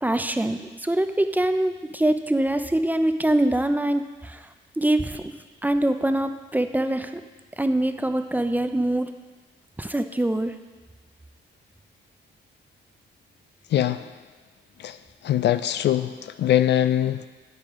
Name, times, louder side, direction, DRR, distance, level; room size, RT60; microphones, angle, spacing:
voice 1, 0.0-4.4 4.8-5.3 5.6-7.1 7.6-9.1 9.8-10.5, right 1 dB, 10° right, 8 dB, 0.5 m, -24 dB
voice 2, 13.7-14.1 14.8-15.0 15.2-17.3, left 11 dB, 60° left, 12 dB, 0.4 m, -22 dB
9.9 x 8.8 x 3.7 m, 1.3 s
cardioid pair, 90°, 20 cm